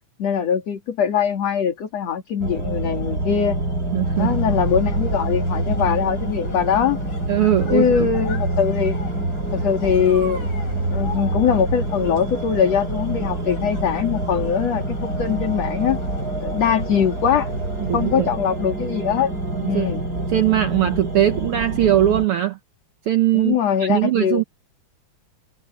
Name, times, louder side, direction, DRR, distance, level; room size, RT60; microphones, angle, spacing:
voice 1, 0.2-3.6 4.2-7.0 7.7-9.0 9.5-10.5 10.9-16.0 16.4-17.5 17.9-19.3 19.6-20.0 23.3-24.4, left 8 dB, 55° left, 3.4 m, -22 dB
sound 1, 2.4-22.2, right 2 dB, 30° right, 5.1 m, -26 dB
voice 2, 3.9-4.4 7.3-8.1 17.8-18.3 19.6-22.6 23.1-24.4, right 12 dB, 80° right, 1.3 m, -20 dB
sound 2, 4.1-18.2, left 4 dB, 80° left, 7.2 m, -40 dB
omnidirectional pair, 3.6 m